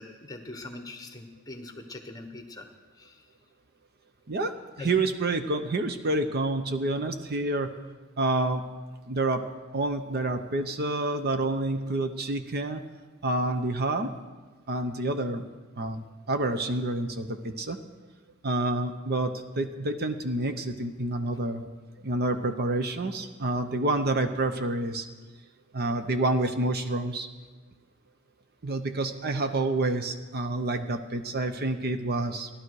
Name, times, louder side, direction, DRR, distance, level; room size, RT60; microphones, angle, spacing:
voice 1, 0.0-2.7 3.0-3.2 4.8-4.9, left 2 dB, 20° left, 6 dB, 1.2 m, -42 dB
voice 2, 4.3-7.7 8.2-8.6 9.1-9.4 9.7-12.8 13.2-14.1 14.7-15.4 15.8-17.8 18.4-21.6 22.0-25.1 25.7-27.3 28.6-32.5, right 2 dB, 50° right, 8 dB, 0.8 m, -28 dB
16.0 x 11.5 x 4.8 m, 1.3 s
head